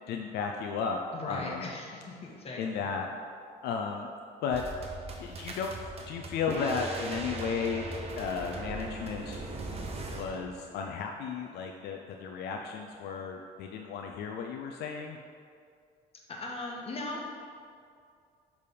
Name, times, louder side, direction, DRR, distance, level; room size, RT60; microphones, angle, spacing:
voice 1, 0.1-1.0 1.3-1.7 2.6-3.1 3.6-4.1 4.4-4.6 5.2-5.7 6.1-7.9 8.2-9.5 10.1-15.2, left 6 dB, 75° left, 3 dB, 0.4 m, -34 dB
voice 2, 1.1-2.9 16.3-17.3, left 2 dB, 35° left, -1 dB, 1.2 m, -39 dB
sound 1, 4.5-10.4, right 2 dB, 35° right, 0.8 m, -39 dB
6.7 x 3.4 x 5.2 m, 2.3 s
cardioid pair, 110°, 17 cm